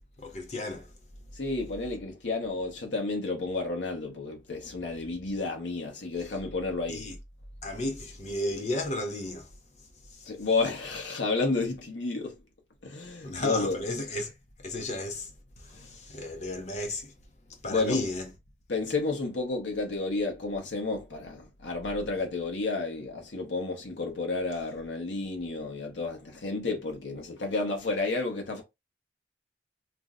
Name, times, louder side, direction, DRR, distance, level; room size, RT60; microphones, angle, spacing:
voice 1, 0.2-1.0 6.2-6.3 6.9-7.2 7.6-10.3 13.2-14.3 14.6-17.1 17.5-18.3, left 1 dB, 40° left, 0.5 m, -34 dB
voice 2, 1.3-7.0 10.3-12.4 12.8-13.8 15.7-16.0 17.7-18.0 18.7-28.6, left 3 dB, 85° left, 0.8 m, -31 dB
2.5 x 2.1 x 3.6 m
head